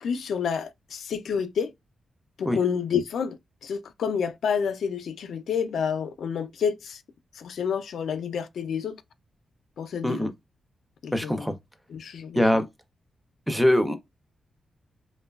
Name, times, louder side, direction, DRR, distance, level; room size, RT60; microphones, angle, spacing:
voice 1, 0.0-1.7 2.4-3.4 3.6-7.0 7.4-9.0 9.8-10.3 11.0-11.5 11.9-12.4, left 7 dB, 75° left, 0.3 m, -29 dB
voice 2, 11.1-11.5 12.4-12.6 13.5-14.0, left 1 dB, 5° right, 0.4 m, -22 dB
2.8 x 2.2 x 2.2 m
wide cardioid pair, 125°, 0 cm